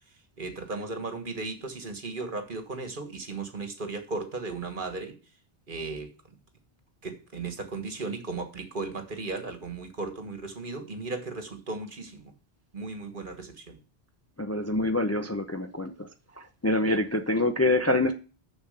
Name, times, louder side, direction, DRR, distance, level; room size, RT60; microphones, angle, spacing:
voice 1, 0.4-5.1 5.7-6.1 7.0-12.3 12.7-13.8, right 3 dB, 55° right, 1.6 m, -36 dB
voice 2, 14.4-16.1 16.4-18.1, left 2 dB, 20° left, 0.5 m, -26 dB
7.1 x 6.3 x 6.5 m
omnidirectional pair, 1.1 m